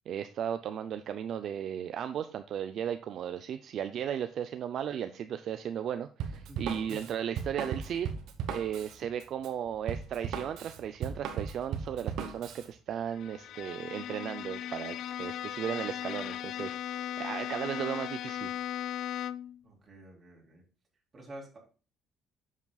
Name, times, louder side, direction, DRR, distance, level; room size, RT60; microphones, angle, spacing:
voice 1, 0.1-8.1 8.5-18.6, right 9 dB, 55° right, 9 dB, 0.5 m, -36 dB
Drum kit, 6.2-12.7, right 7 dB, 75° right, 1.2 m, -37 dB
Bowed string instrument, 13.1-19.6, left 11 dB, 65° left, 0.3 m, -37 dB
voice 2, 19.6-20.6 21.1-21.6, right 1 dB, 25° right, -2 dB, 3.8 m, -48 dB
9.4 x 7.3 x 2.3 m, 0.36 s
cardioid pair, 125°, 0 cm